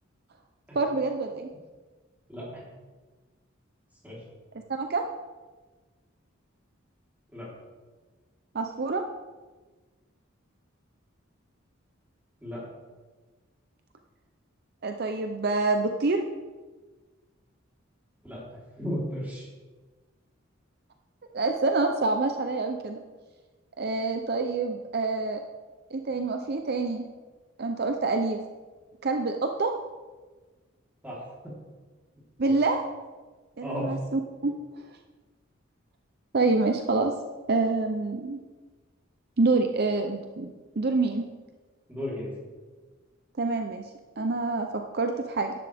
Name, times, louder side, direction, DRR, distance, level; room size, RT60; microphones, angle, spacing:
voice 1, 0.7-1.5 4.7-5.0 8.5-9.0 14.8-16.2 21.3-23.0 23.8-25.4 25.9-27.1 27.6-28.4 29.0-29.7 32.4-32.8 33.6-35.0 36.3-37.1 37.5-38.4 39.4-41.2 43.4-43.8 44.2-44.7 44.9-45.5, right 3 dB, 50° right, 5 dB, 0.6 m, -27 dB
voice 2, 2.3-2.6 4.0-4.2 7.3-7.5 12.4-12.6 18.2-18.4 18.8-19.4 31.0-31.2 31.4-31.5 32.4-32.5 33.6-34.0 41.9-42.3, equal, 10° right, -7 dB, 3.7 m, -34 dB
12.5 x 11.0 x 3.5 m, 1.3 s
head